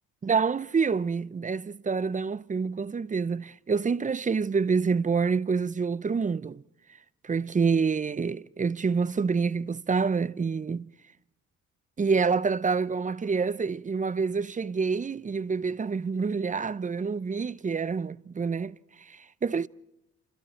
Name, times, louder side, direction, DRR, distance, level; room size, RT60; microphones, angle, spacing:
voice 1, 0.2-6.6 7.2-10.8 12.0-19.7, right 5 dB, 25° right, 0.7 m, -27 dB
28.5 x 27.5 x 4.4 m
cardioid pair, 90°, 30 cm